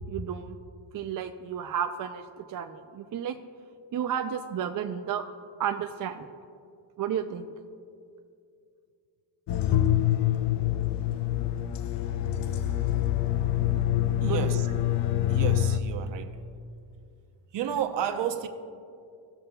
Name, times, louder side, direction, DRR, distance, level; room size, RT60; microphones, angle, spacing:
voice 1, 0.1-0.6 0.9-3.3 3.9-5.2 5.6-6.3 7.0-7.6 14.2-14.6, right 8 dB, 45° right, 0.5 m, -32 dB
sound 1, 9.5-15.8, left 12 dB, 60° left, 0.5 m, -26 dB
voice 2, 14.2-14.7 15.3-16.4 17.5-18.5, right 9 dB, 60° right, 0.8 m, -31 dB
17.5 x 6.6 x 2.3 m
cardioid pair, 100°, 48 cm